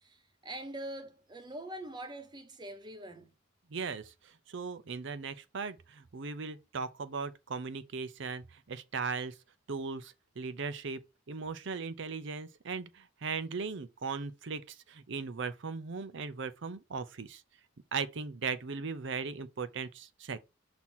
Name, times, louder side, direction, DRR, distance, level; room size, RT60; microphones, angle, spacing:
voice 1, 0.0-3.3, right 1 dB, 20° right, 0.9 m, -43 dB
voice 2, 3.7-9.3 9.7-11.0 11.3-17.4 17.9-20.4, right 5 dB, 60° right, 0.6 m, -38 dB
6.1 x 2.8 x 5.5 m
head